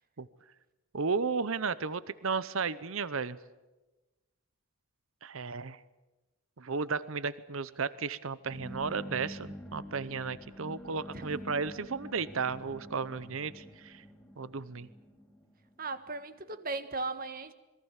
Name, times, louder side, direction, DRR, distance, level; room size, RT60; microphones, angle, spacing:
voice 1, 0.9-3.4 5.2-5.8 6.6-14.0 14.4-14.9, right 5 dB, 65° right, 17 dB, 0.8 m, -34 dB
sound 1, 8.5-16.2, equal, ahead, 2.9 m, -47 dB
voice 2, 11.1-11.5 15.8-17.5, right 3 dB, 40° right, 11 dB, 1.4 m, -37 dB
27.0 x 22.0 x 7.3 m, 1.1 s
head